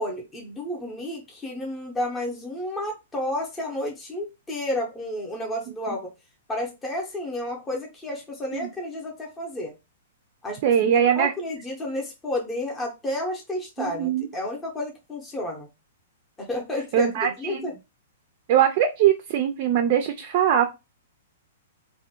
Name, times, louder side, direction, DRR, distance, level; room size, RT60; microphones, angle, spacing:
voice 1, 0.0-6.1 6.5-9.7 10.4-10.6 10.9-15.7 16.4-17.7, left 1 dB, 10° left, -1 dB, 0.6 m, -31 dB
voice 2, 10.6-11.3 13.8-14.3 16.9-17.7 18.5-20.7, right 9 dB, 40° right, 6 dB, 0.3 m, -21 dB
2.5 x 2.1 x 2.7 m, 0.25 s
hypercardioid pair, 155°, 0 cm